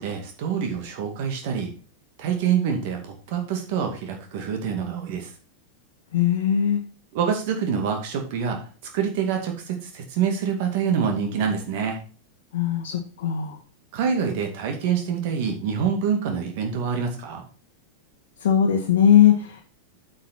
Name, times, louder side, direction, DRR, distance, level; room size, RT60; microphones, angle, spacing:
voice 1, 0.0-1.7 2.2-5.3 7.1-8.6 8.9-12.0 13.9-17.4, right 7 dB, 50° right, 3 dB, 2.2 m, -26 dB
voice 2, 6.1-6.8 12.5-13.6 18.4-19.6, left 9 dB, 55° left, 0 dB, 1.3 m, -19 dB
8.4 x 5.8 x 4.3 m, 0.38 s
figure-of-eight pair, 90°, 0 cm